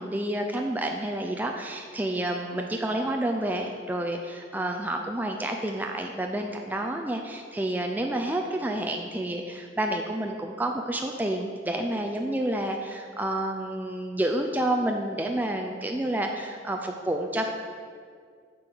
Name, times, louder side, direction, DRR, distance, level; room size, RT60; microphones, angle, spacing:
voice 1, 0.0-17.5, right 1 dB, 10° right, 2 dB, 0.4 m, -29 dB
8.5 x 4.6 x 6.9 m, 2.1 s
head